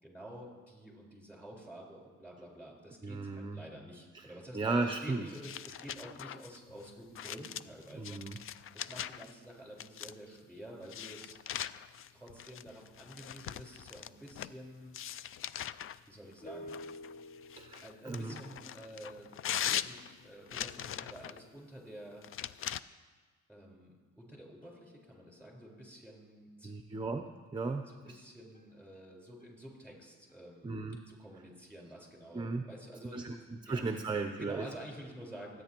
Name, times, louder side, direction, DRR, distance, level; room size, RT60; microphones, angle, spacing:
voice 1, 0.0-11.4 12.1-14.9 16.1-16.8 17.8-19.4 19.8-22.2 23.5-26.8 27.8-30.8 31.1-33.4 33.7-33.8 34.4-35.6, right 1 dB, 5° left, -2 dB, 4.5 m, -49 dB
voice 2, 3.0-3.6 4.1-4.3 4.5-5.2 7.9-8.4 17.6-18.4 26.6-27.3 27.5-28.2 30.6-31.0 32.3-32.6 33.1-33.3 33.6-34.7, right 3 dB, 15° right, 7 dB, 0.6 m, -35 dB
sound 1, 5.3-9.3 9.8-10.4 10.9-14.6 14.9-16.0 16.7-21.4 22.2-22.8, left 10 dB, 45° left, 0.4 m, -41 dB
sound 2, 16.4-20.0 24.6-26.1 26.9-27.0 27.3-27.4 27.7-27.8 28.1-28.2 28.5-29.0 29.4-30.0 30.3-30.4 31.0-31.1 32.8-32.9 33.4-33.5 33.9-34.0, left 1 dB, 30° left, 0.9 m, -52 dB
24.0 x 9.4 x 3.0 m, 1.4 s
cardioid pair, 90°, 30 cm